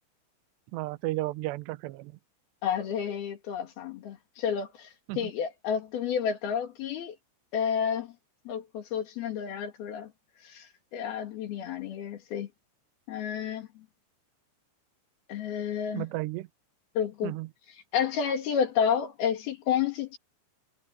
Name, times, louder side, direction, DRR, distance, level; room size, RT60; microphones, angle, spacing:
voice 1, 0.7-2.1 5.1-5.3 15.9-16.5 17.2-17.5, right 19 dB, 75° right, 2.7 m, -33 dB
voice 2, 2.6-4.9 5.2-7.1 7.5-8.1 8.5-10.1 10.4-10.7 10.9-12.5 13.1-13.7 15.3-16.1 17.0-17.3 17.9-20.2, left 8 dB, 60° left, 3.7 m, -30 dB
omnidirectional pair, 5.5 m